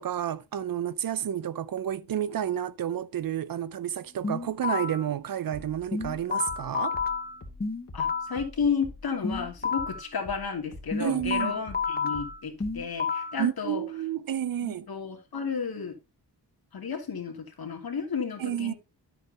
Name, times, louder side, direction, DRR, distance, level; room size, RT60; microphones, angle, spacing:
voice 1, 0.0-7.0 11.0-11.6 13.4-14.9 18.4-18.7, right 10 dB, 55° right, 0.6 m, -30 dB
sound 1, 4.2-5.1 5.9-8.4 9.2-10.1 10.9-13.4, left 5 dB, 20° left, 1.1 m, -30 dB
sound 2, 5.5-10.5 10.7-13.0, left 1 dB, 40° left, 2.6 m, -45 dB
voice 2, 7.9-13.8 14.6-16.0 16.7-18.7, left 6 dB, 60° left, 2.9 m, -32 dB
9.7 x 7.9 x 2.9 m
cardioid pair, 70°, 41 cm